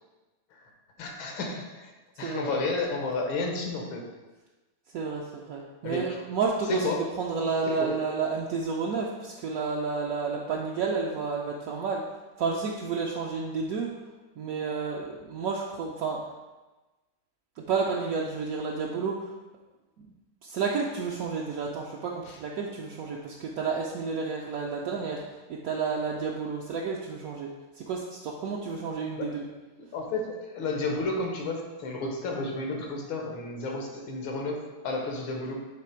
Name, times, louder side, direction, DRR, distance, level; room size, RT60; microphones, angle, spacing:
voice 1, 1.0-1.9 2.2-4.1 5.8-6.2 6.7-7.1 7.8-8.0 22.3-22.4 29.2-29.4 29.9-35.6, left 3 dB, 90° left, 2 dB, 1.9 m, -32 dB
voice 2, 2.2-2.5 4.9-12.0 12.4-14.0 14.4-16.3 17.6-19.3 20.0-20.1 20.4-25.2 25.5-29.4, right 5 dB, 75° right, -2 dB, 0.8 m, -31 dB
7.4 x 3.4 x 4.4 m, 1.2 s
omnidirectional pair, 2.2 m